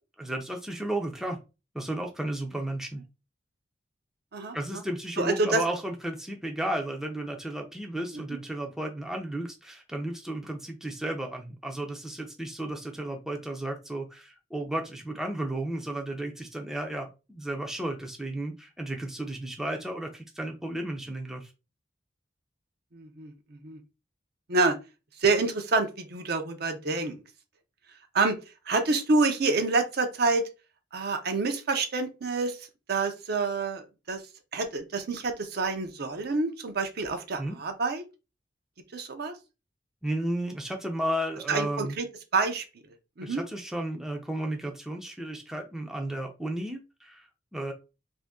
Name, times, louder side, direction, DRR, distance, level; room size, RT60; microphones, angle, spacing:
voice 1, 0.2-1.4 1.7-3.0 4.5-21.5 37.4-37.6 40.0-42.0 43.2-47.7, right 1 dB, 5° right, 0.5 m, -33 dB
voice 2, 4.3-4.8 5.2-5.6 8.1-8.2 22.9-23.8 24.5-24.8 25.2-27.2 28.1-28.4 28.7-30.5 30.9-34.2 34.5-38.0 38.9-39.3 41.5-42.1 42.3-42.6 43.2-43.4, right 3 dB, 60° right, 0.6 m, -27 dB
2.7 x 2.6 x 3.5 m
head